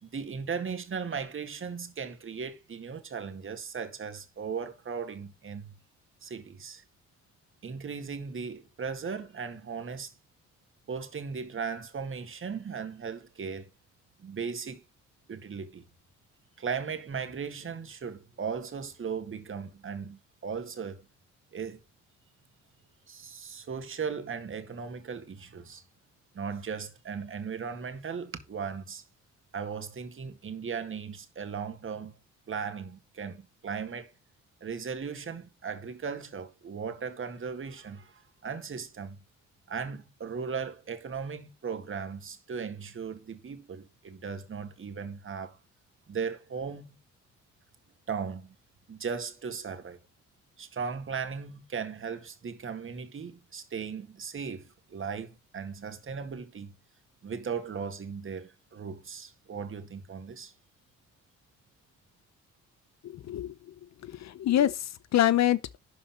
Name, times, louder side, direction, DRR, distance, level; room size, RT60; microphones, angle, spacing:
voice 1, 0.0-5.7 6.2-6.8 7.6-10.1 10.9-13.7 14.2-14.8 15.3-15.9 16.6-21.1 21.5-21.8 23.1-25.8 26.3-29.0 29.5-32.2 32.5-34.1 34.6-39.2 39.7-45.6 46.1-47.0 48.1-48.6 48.9-50.0 50.6-56.7 57.2-60.5, right 6 dB, 45° right, 2.0 m, -37 dB
voice 2, 63.0-63.5 64.0-65.8, left 12 dB, 60° left, 0.8 m, -26 dB
11.5 x 4.0 x 5.7 m
cardioid pair, 90°, 30 cm